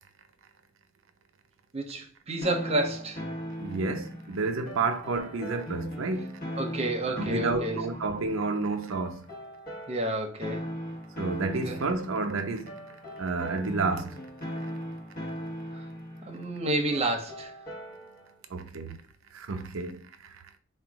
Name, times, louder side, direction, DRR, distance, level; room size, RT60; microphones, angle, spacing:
voice 1, 1.7-3.2 6.6-7.8 9.9-10.7 11.7-11.8 15.7-15.9 16.2-17.5, right 1 dB, 30° right, 0.8 m, -30 dB
sound 1, 2.4-18.3, equal, 45° left, 1.1 m, -39 dB
voice 2, 3.6-6.5 7.1-9.2 11.2-12.8 13.2-14.2 18.5-19.0 19.3-20.6, right 3 dB, 80° right, 0.6 m, -31 dB
3.8 x 2.3 x 4.6 m
head